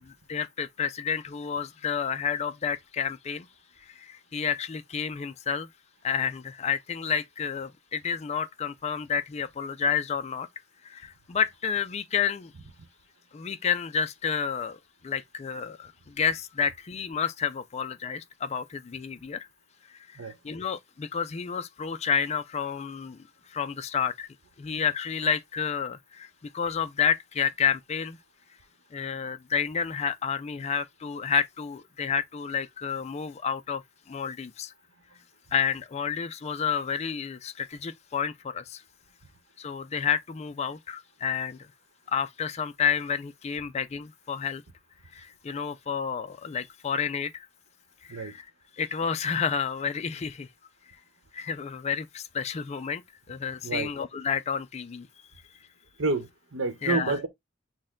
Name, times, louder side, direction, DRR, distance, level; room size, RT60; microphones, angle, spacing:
voice 1, 0.0-3.5 3.8-5.7 6.0-10.5 10.8-12.5 13.3-14.8 15.0-19.5 20.1-23.2 23.5-24.3 24.6-28.2 28.9-33.8 34.1-34.7 35.5-38.8 39.6-41.6 42.1-44.6 45.1-47.5 48.1-48.5 48.8-50.5 51.3-53.0 53.3-55.1 56.8-57.2, left 7 dB, 35° left, 0.4 m, -30 dB
voice 2, 56.0-57.3, right 3 dB, 80° right, 1.0 m, -29 dB
6.4 x 2.2 x 3.6 m
head